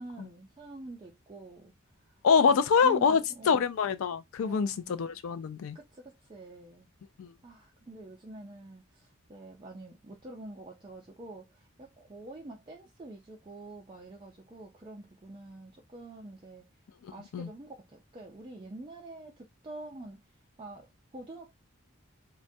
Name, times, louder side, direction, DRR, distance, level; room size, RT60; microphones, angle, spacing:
voice 1, 0.0-1.7 2.1-3.6 4.4-5.2 5.7-6.9 7.4-16.7 17.1-20.2 20.6-21.5, right 2 dB, 20° right, 0.4 m, -46 dB
voice 2, 2.2-3.2 3.5-5.8 7.2-7.3 17.0-17.5, left 6 dB, 70° left, 0.3 m, -25 dB
2.2 x 2.1 x 2.6 m
head